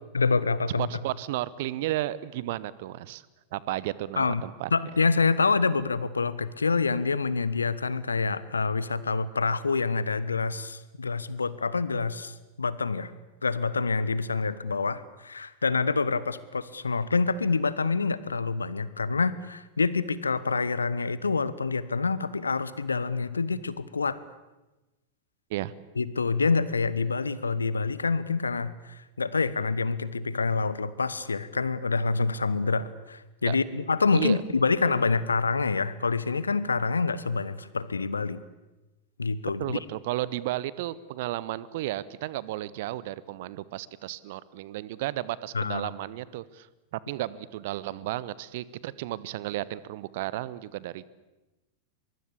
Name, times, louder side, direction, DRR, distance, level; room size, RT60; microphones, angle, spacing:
voice 1, 0.1-0.9 4.2-4.4 4.7-13.1 13.4-24.2 26.0-38.4 39.2-39.8 45.5-45.9, left 4 dB, 75° left, 17 dB, 1.2 m, -27 dB
voice 2, 0.8-3.2 3.5-4.7 25.5-25.7 33.5-33.6 34.1-34.4 39.6-46.7 46.9-51.1, right 15 dB, 50° right, 20 dB, 1.0 m, -33 dB
23.5 x 23.0 x 8.5 m, 1.1 s
figure-of-eight pair, 90°, 0 cm